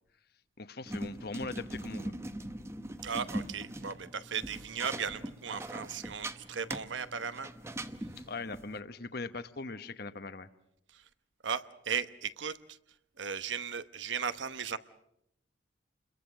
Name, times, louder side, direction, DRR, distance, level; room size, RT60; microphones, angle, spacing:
voice 1, 0.6-2.1 8.2-10.5, left 3 dB, 55° left, 12 dB, 1.1 m, -40 dB
sound 1, 0.9-8.8, right 1 dB, 15° right, 0.9 m, -41 dB
voice 2, 3.0-7.5 10.9-11.0 11.4-12.8 13.2-14.8, right 6 dB, 85° right, 13 dB, 1.0 m, -36 dB
28.5 x 22.5 x 6.4 m, 0.77 s
head